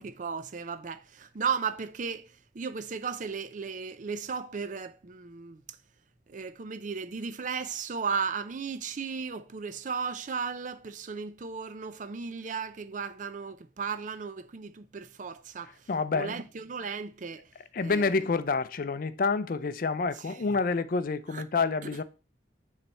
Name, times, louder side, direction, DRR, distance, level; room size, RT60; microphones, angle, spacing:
voice 1, 0.0-5.8 6.3-17.5 17.8-18.3 20.2-20.5 21.3-21.4, right 5 dB, 45° right, 0.5 m, -35 dB
voice 2, 15.9-16.4 17.7-22.0, left 4 dB, 50° left, 0.4 m, -28 dB
9.5 x 3.3 x 4.3 m
head